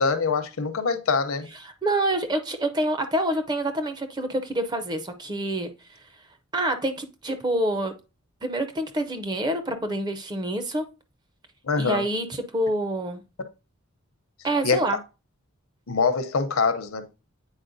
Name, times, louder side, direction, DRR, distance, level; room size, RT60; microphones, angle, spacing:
voice 1, 0.0-1.5 11.6-12.0 14.6-14.8 15.9-17.1, left 4 dB, 75° left, 0.7 m, -24 dB
voice 2, 1.6-5.7 6.5-7.9 8.4-10.9 11.8-13.2 14.4-15.0, right 1 dB, 20° right, 0.5 m, -27 dB
8.7 x 4.2 x 2.6 m
head